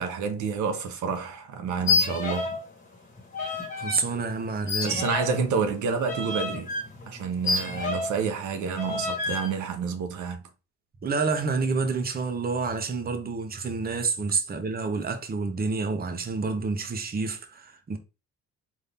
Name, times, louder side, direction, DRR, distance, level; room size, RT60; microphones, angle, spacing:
voice 1, 0.0-2.5 4.8-6.7 7.1-10.4, right 5 dB, 75° right, 0.8 m, -29 dB
sound 1, 1.8-2.7 2.9-4.0 4.7-8.3 8.8-9.5, left 4 dB, 25° left, 1.5 m, -29 dB
voice 2, 3.8-4.9 11.0-18.0, right 4 dB, 30° right, 0.8 m, -28 dB
4.2 x 2.7 x 3.4 m
cardioid pair, 90°, 30 cm